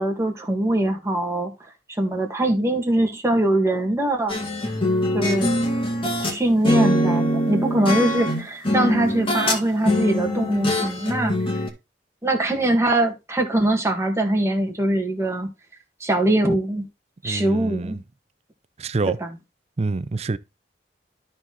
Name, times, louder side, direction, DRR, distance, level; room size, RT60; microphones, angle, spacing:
voice 1, 0.0-1.5 2.0-4.4 5.1-5.5 6.3-11.3 12.2-15.5 16.0-16.9 17.2-18.0 19.1-19.3, right 1 dB, 15° right, 1.8 m, -22 dB
sound 1, 4.3-6.4 6.6-9.6 9.8-11.7, equal, 30° left, 2.1 m, -23 dB
voice 2, 17.2-18.0 18.8-19.2 19.8-20.4, right 3 dB, 40° right, 0.5 m, -26 dB
12.5 x 4.3 x 4.0 m
head